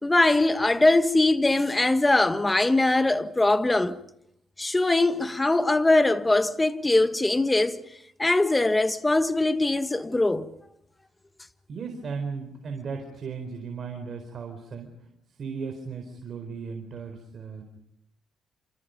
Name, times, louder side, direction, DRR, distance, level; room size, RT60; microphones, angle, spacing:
voice 1, 0.0-4.0 4.6-7.8 8.2-10.5, left 2 dB, 15° left, 1.4 m, -22 dB
voice 2, 11.7-14.9 15.4-17.6, right 5 dB, 50° right, 4.3 m, -36 dB
28.0 x 28.0 x 5.3 m
cardioid pair, 90°, 0 cm